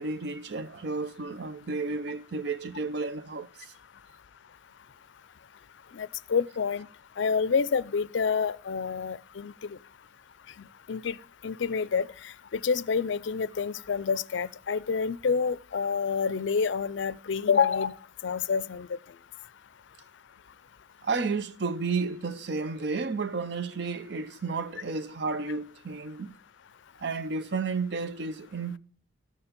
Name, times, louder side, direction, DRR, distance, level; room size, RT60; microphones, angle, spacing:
voice 1, 0.0-3.7 21.0-26.3 27.0-28.8, right 4 dB, 55° right, 0.6 m, -32 dB
voice 2, 5.9-6.9 7.2-9.8 10.9-11.2 11.4-12.1 12.5-17.9 18.2-19.0, left 6 dB, 70° left, 0.4 m, -28 dB
14.0 x 7.1 x 5.1 m
head